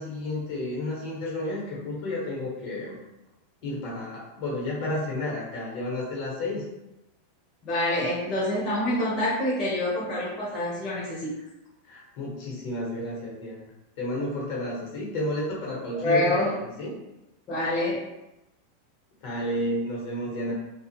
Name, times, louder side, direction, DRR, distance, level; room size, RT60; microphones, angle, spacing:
voice 1, 0.0-3.0 3.6-6.6 11.8-13.6 14.0-16.9 19.2-20.5, left 1 dB, 60° left, -4 dB, 1.1 m, -31 dB
voice 2, 7.6-11.4 15.9-16.5 17.5-18.0, left 1 dB, 35° left, -8 dB, 0.8 m, -26 dB
2.3 x 2.1 x 2.8 m, 0.94 s
supercardioid pair, 130°, 0 cm